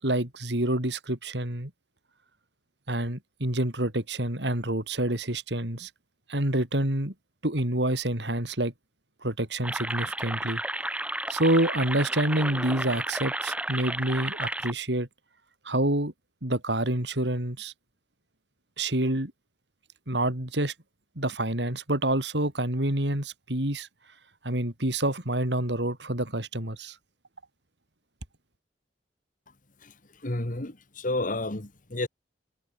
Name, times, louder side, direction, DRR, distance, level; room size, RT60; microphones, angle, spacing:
voice 1, 0.0-1.7 2.9-5.9 6.3-7.1 7.4-8.7 9.2-10.6 11.3-15.1 15.6-16.1 16.4-17.7 18.8-19.3 20.1-20.7 21.2-23.9 24.4-27.0, right 1 dB, 75° right, 4.7 m, -27 dB
sound 1, 9.6-14.7, right 1 dB, 10° right, 2.3 m, -32 dB
voice 2, 29.8-32.1, left 2 dB, 50° left, 2.0 m, -31 dB
head